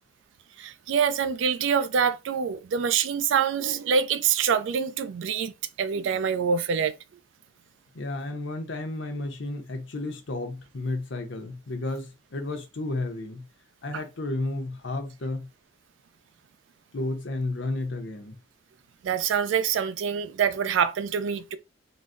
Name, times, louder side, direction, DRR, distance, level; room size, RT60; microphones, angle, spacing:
voice 1, 0.6-5.5 5.8-6.9 13.9-14.0 19.0-21.6, right 7 dB, 75° right, 0.3 m, -25 dB
voice 2, 7.9-13.5 13.8-15.5 16.9-18.4, left 2 dB, 70° left, 0.7 m, -32 dB
3.9 x 2.0 x 2.4 m
head